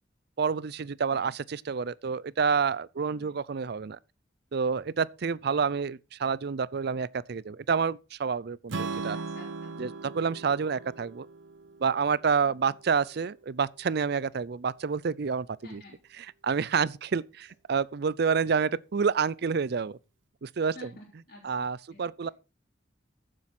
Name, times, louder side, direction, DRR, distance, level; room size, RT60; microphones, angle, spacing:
voice 1, 0.4-4.0 4.5-9.2 9.8-11.3 11.8-15.8 16.2-20.0 20.4-20.9 21.4-22.3, right 5 dB, 60° right, 0.5 m, -28 dB
Strum, 8.7-12.9, right 4 dB, 85° right, 0.8 m, -38 dB
voice 2, 9.1-10.1 12.4-12.7 15.6-16.0 20.7-21.6 21.9-22.3, left 1 dB, 55° left, 3.5 m, -51 dB
14.5 x 7.7 x 4.3 m
head